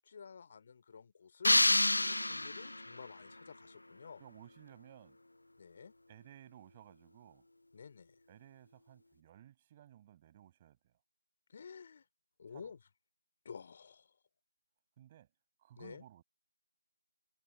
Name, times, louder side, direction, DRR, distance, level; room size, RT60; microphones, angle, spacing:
voice 1, 0.0-1.6 1.9-4.2 5.6-5.9 7.7-8.2 11.5-12.0 12.4-12.8 13.4-14.2 15.8-16.0, left 6 dB, 25° left, 3.3 m, -51 dB
sound 1, 1.4-3.0, left 2 dB, 65° left, 0.4 m, -28 dB
voice 2, 4.2-5.2 6.1-7.5 8.3-11.0 12.5-12.7 15.0-15.3 15.6-16.2, right 12 dB, 15° right, 7.1 m, -58 dB
figure-of-eight pair, 165°, 0 cm